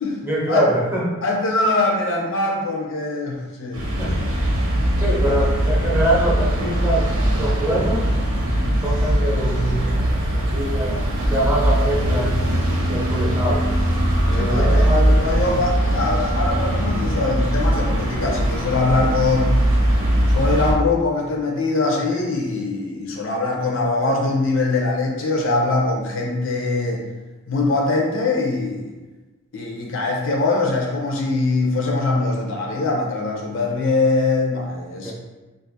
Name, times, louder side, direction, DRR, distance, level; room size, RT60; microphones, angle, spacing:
voice 1, 0.2-1.1 4.0-4.2 5.0-8.1 8.8-11.0 11.3-12.4 12.9-13.7 14.3-15.1 35.0-35.1, right 1 dB, 10° right, -5 dB, 0.6 m, -24 dB
voice 2, 1.2-3.9 8.5-8.8 13.1-13.3 14.3-19.6 20.3-27.0 27.5-28.9 29.5-35.1, left 3 dB, 65° left, 0 dB, 0.5 m, -22 dB
sound 1, 3.7-20.7, right 1 dB, 85° right, 0.9 m, -20 dB
2.5 x 2.4 x 3.9 m, 1.2 s
head